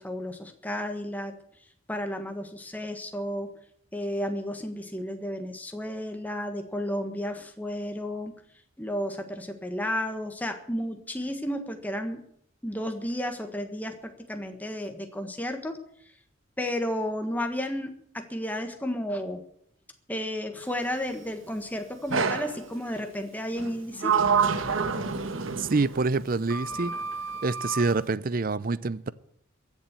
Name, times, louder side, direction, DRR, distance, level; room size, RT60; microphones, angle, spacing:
voice 1, 0.0-1.4 1.9-3.6 3.9-8.3 8.8-12.2 12.6-15.8 16.6-19.4 20.1-24.2, equal, 10° left, 1.5 m, -32 dB
Sliding door, 22.1-22.6 23.6-26.0 26.5-27.9, right 5 dB, 80° right, 1.3 m, -27 dB
voice 2, 25.6-27.0 27.4-29.1, right 3 dB, 45° right, 0.5 m, -26 dB
15.0 x 7.3 x 9.7 m
head